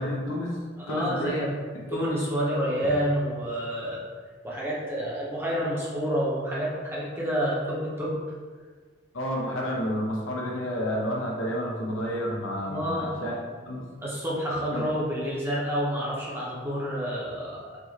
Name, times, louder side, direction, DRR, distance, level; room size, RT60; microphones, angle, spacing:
voice 1, 0.0-0.6 0.9-1.4 1.9-2.0 9.1-13.4 13.7-13.9 14.7-15.1, equal, 90° left, -2 dB, 0.8 m, -30 dB
voice 2, 0.8-1.6 1.9-4.0 4.4-8.1 12.7-13.1 14.0-17.8, equal, 10° right, -6 dB, 0.7 m, -29 dB
4.8 x 2.4 x 2.8 m, 1.5 s
head